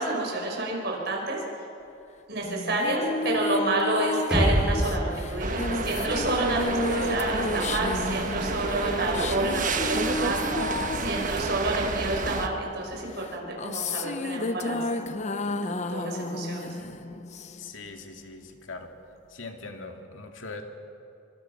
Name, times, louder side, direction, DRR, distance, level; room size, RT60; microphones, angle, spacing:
voice 1, 0.0-1.4 2.3-10.4 11.0-15.0 15.5-16.7, right 2 dB, 60° right, -1 dB, 6.0 m, -29 dB
sound 1, 2.4-12.3 13.2-17.9, left 2 dB, 35° left, 0.8 m, -32 dB
sound 2, 4.3-8.2, equal, 5° right, 6.0 m, -30 dB
sound 3, 5.4-12.5, right 3 dB, 45° right, 1.3 m, -30 dB
voice 2, 17.6-18.9 19.3-20.6, left 3 dB, 90° left, 4 dB, 2.3 m, -41 dB
26.5 x 25.0 x 6.1 m, 2.8 s
head